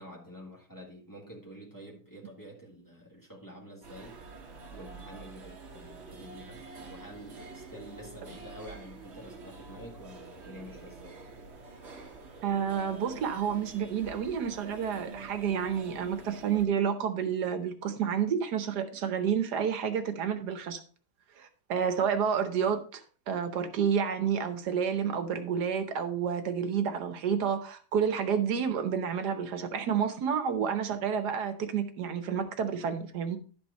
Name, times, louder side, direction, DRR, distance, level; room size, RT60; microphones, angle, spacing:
voice 1, 0.0-4.2 4.7-11.2, equal, 10° left, 1.9 m, -48 dB
sound 1, 3.8-16.6, right 4 dB, 45° right, 1.5 m, -47 dB
voice 2, 12.4-20.8 21.4-33.4, right 7 dB, 75° right, 1.4 m, -30 dB
11.5 x 5.3 x 4.1 m
omnidirectional pair, 1.8 m